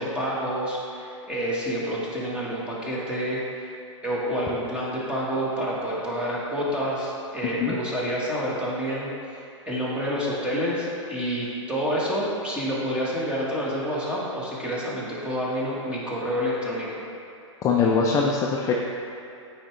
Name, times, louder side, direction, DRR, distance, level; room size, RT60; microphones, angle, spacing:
voice 1, 0.0-3.7 4.0-9.4 9.7-17.0, equal, 5° right, -7 dB, 1.4 m, -28 dB
voice 2, 17.6-18.8, left 5 dB, 20° left, -2 dB, 0.4 m, -22 dB
8.5 x 4.8 x 3.2 m, 2.7 s
hypercardioid pair, 125°, 16 cm